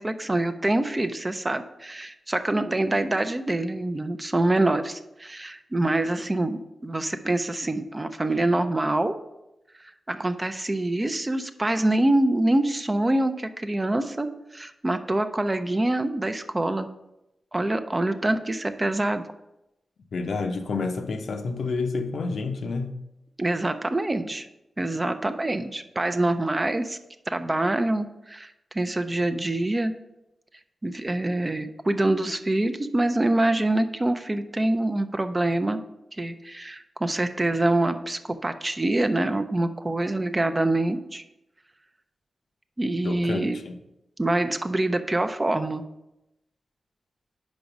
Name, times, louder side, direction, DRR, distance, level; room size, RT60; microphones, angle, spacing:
voice 1, 0.0-9.2 10.1-14.3 14.5-16.9 17.5-19.2 23.4-24.5 24.8-27.0 27.3-29.9 30.8-35.8 36.1-41.2 42.8-43.6 44.2-45.8, right 1 dB, 20° right, 0.5 m, -25 dB
voice 2, 20.1-22.9 43.0-43.7, left 4 dB, 75° left, 0.7 m, -29 dB
5.2 x 5.1 x 5.9 m
wide cardioid pair, 100°, 0 cm